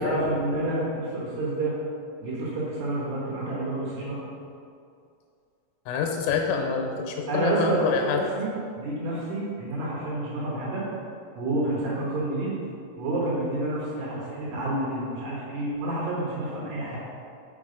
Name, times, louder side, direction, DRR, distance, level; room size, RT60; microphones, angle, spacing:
voice 1, 0.0-1.7 2.2-4.2 7.3-10.8 11.4-12.6 13.0-17.0, right 1 dB, 65° right, -6 dB, 3.1 m, -29 dB
voice 2, 5.9-8.2, left 5 dB, 90° left, 2 dB, 3.3 m, -27 dB
6.3 x 6.1 x 5.1 m, 2.4 s
omnidirectional pair, 5.9 m